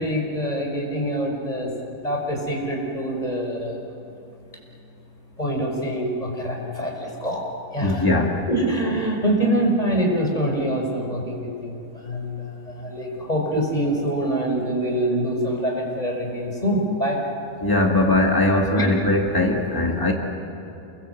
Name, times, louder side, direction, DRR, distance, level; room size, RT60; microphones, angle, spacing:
voice 1, 0.0-1.7 2.0-3.7 5.4-7.4 7.7-8.0 8.5-12.3 12.7-17.2 18.7-18.8, right 1 dB, 10° left, -1 dB, 4.8 m, -25 dB
voice 2, 7.8-8.4 17.6-20.1, left 2 dB, 30° left, 0 dB, 0.4 m, -20 dB
28.5 x 22.0 x 7.9 m, 2.8 s
omnidirectional pair, 4.0 m